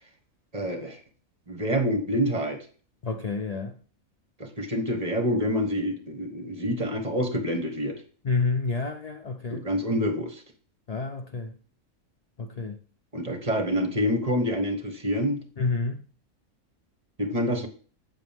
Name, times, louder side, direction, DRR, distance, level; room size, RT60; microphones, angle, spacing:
voice 1, 0.5-1.0 1.5-2.6 4.4-7.9 9.5-10.4 13.1-15.4 17.2-17.7, equal, 30° right, 1.4 m, -27 dB
voice 2, 3.0-3.8 8.2-9.7 10.9-11.5 12.4-12.8 15.6-16.0, left 4 dB, 45° left, 0.5 m, -29 dB
8.4 x 8.1 x 3.5 m
omnidirectional pair, 1.4 m